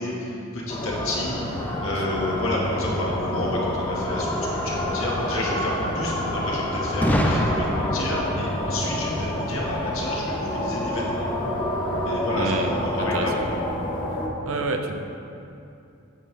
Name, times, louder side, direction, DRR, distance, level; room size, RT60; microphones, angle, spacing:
voice 1, 0.0-11.3 12.0-13.6, left 1 dB, 70° left, -4 dB, 1.8 m, -30 dB
sound 1, 0.7-14.3, left 1 dB, 25° left, 1.0 m, -28 dB
Boom, 7.0-10.8, equal, 5° left, 0.5 m, -27 dB
voice 2, 12.3-13.3 14.4-15.0, right 3 dB, 65° right, 4 dB, 0.7 m, -29 dB
8.9 x 7.6 x 3.4 m, 2.6 s
head